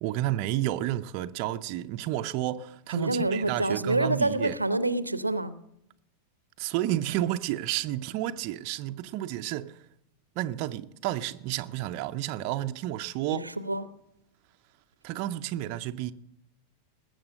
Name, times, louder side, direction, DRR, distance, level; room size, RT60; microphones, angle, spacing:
voice 1, 0.0-4.5 6.6-9.8 10.4-13.5 15.0-16.1, right 14 dB, 45° right, 0.6 m, -31 dB
voice 2, 2.9-5.5 13.3-13.8, right 2 dB, 85° right, 0.7 m, -27 dB
19.5 x 8.2 x 6.5 m
figure-of-eight pair, 90°, 0 cm